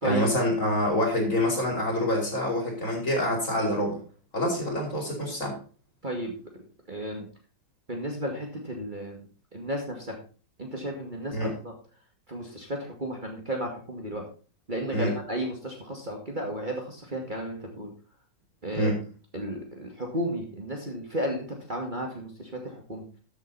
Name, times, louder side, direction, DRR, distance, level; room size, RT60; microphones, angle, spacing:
voice 1, 0.0-4.0 4.3-5.6 11.3-11.5 14.9-15.1 18.7-19.0, left 1 dB, 45° left, 0 dB, 5.1 m, -26 dB
voice 2, 6.0-6.4 6.9-7.3 7.9-9.3 9.5-10.2 10.6-11.7 12.3-14.3 14.7-17.9 18.6-18.9 19.3-23.0, equal, 25° right, 1 dB, 2.3 m, -33 dB
13.5 x 8.2 x 4.2 m, 0.37 s
omnidirectional pair, 1.9 m